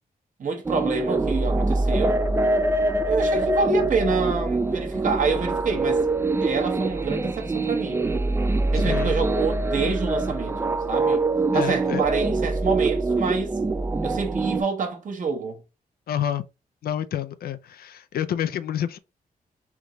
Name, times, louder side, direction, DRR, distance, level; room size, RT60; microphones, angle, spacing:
voice 1, 0.4-2.2 3.1-6.1 6.4-8.0 8.7-11.2 11.5-13.5 14.0-15.6, right 4 dB, 55° right, 1.1 m, -27 dB
sound 1, 0.6-14.6, right 2 dB, 15° right, 0.3 m, -24 dB
sound 2, 1.2-8.7, right 2 dB, ahead, 0.7 m, -47 dB
voice 2, 8.7-9.2 11.5-12.0 16.1-16.4 16.8-19.0, left 10 dB, 80° left, 0.4 m, -28 dB
3.5 x 3.0 x 3.7 m
wide cardioid pair, 150°, 16 cm